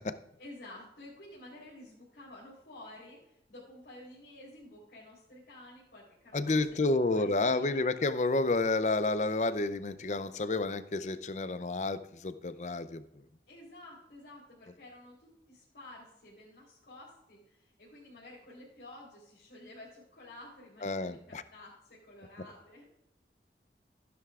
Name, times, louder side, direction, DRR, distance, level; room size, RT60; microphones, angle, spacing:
voice 1, 0.4-6.9 7.1-7.8 13.5-22.9, left 1 dB, 70° left, -7 dB, 3.6 m, -51 dB
voice 2, 6.3-13.0 20.8-21.4, left 3 dB, 40° left, 13 dB, 0.5 m, -30 dB
14.5 x 10.5 x 2.4 m, 0.83 s
head